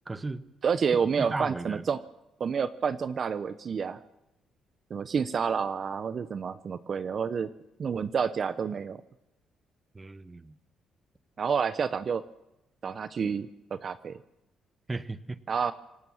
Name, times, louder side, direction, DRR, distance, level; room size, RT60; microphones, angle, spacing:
voice 1, 0.1-0.4 1.2-1.8 9.9-10.5 14.9-15.4, right 3 dB, 20° right, 14 dB, 1.2 m, -35 dB
voice 2, 0.6-2.0 2.4-4.0 4.9-7.5 7.8-9.0 11.4-12.2 12.8-14.2 15.5-15.7, right 6 dB, 50° right, 14 dB, 0.9 m, -29 dB
27.5 x 19.0 x 7.3 m, 0.91 s
cardioid pair, 90°, 0 cm